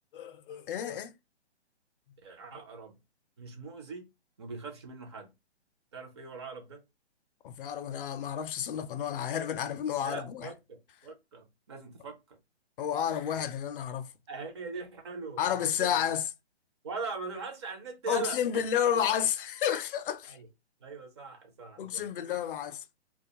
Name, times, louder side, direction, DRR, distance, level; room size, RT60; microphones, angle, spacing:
voice 1, 0.1-1.1 7.4-10.5 12.8-14.1 15.4-16.3 18.1-20.4 21.8-22.8, left 9 dB, 50° left, 0.4 m, -31 dB
voice 2, 2.2-3.0 3.4-4.1 4.4-5.3 5.9-6.8 10.0-12.4 13.3-13.4 14.3-16.0 16.8-18.4 20.3-20.5 20.8-22.1, right 4 dB, 25° right, 0.5 m, -41 dB
2.3 x 2.2 x 2.7 m
hypercardioid pair, 145°, 34 cm